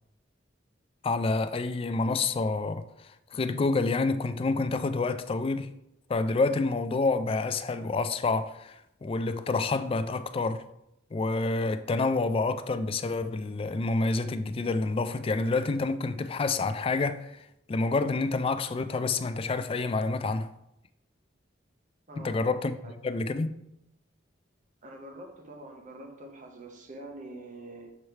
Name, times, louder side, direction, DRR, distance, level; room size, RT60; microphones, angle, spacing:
voice 1, 1.0-5.7 6.1-10.6 11.1-17.4 17.7-20.5 22.2-22.8 23.0-23.6, left 3 dB, 30° left, 0.3 m, -28 dB
voice 2, 22.1-22.5 22.8-22.9 24.8-27.9, right 2 dB, 45° right, 1.0 m, -45 dB
6.9 x 3.2 x 4.4 m
head